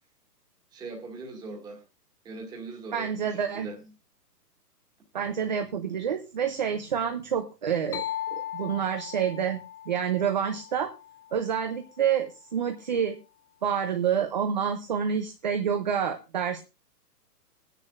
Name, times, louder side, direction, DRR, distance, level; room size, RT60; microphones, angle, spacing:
voice 1, 0.7-1.8 2.2-3.8, right 3 dB, 10° right, 1.8 m, -40 dB
voice 2, 2.9-3.7 5.1-8.0 8.3-9.6 9.9-10.9 11.3-13.2 13.6-16.6, right 8 dB, 30° right, 0.6 m, -28 dB
sound 1, 7.9-11.6, left 11 dB, 65° left, 1.1 m, -38 dB
22.0 x 9.8 x 2.4 m
hypercardioid pair, 170°, 48 cm